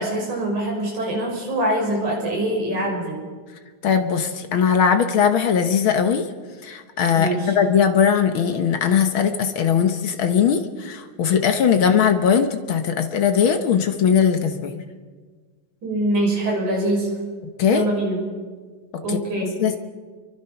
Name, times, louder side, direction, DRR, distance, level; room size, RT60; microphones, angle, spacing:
voice 1, 0.0-3.2 7.1-7.6 15.8-17.1 17.7-18.2 19.0-19.6, right 1 dB, 70° right, -1 dB, 7.6 m, -24 dB
voice 2, 3.8-6.2 6.6-14.8 17.6-17.8 19.1-19.8, left 7 dB, 55° left, 7 dB, 1.5 m, -20 dB
29.0 x 23.5 x 5.8 m, 1.5 s
omnidirectional pair, 3.6 m